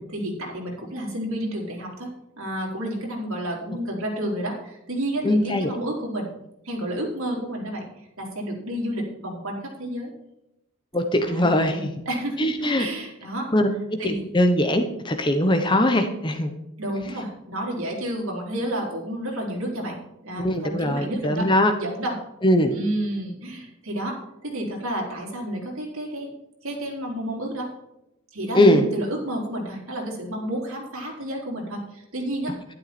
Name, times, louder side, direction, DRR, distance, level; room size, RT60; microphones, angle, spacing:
voice 1, 0.1-2.1 2.4-6.3 6.6-7.9 8.2-10.1 11.2-13.5 14.0-14.3 16.8-21.5 21.8-22.2 22.7-26.3 26.6-27.7 28.3-32.5, right 1 dB, 80° right, -1 dB, 4.0 m, -30 dB
voice 2, 5.2-5.7 10.9-11.9 12.4-12.9 13.5-16.5 20.4-21.7 22.4-22.7 28.5-28.8, left 1 dB, 20° left, 6 dB, 0.9 m, -21 dB
12.0 x 11.0 x 4.3 m, 0.85 s
head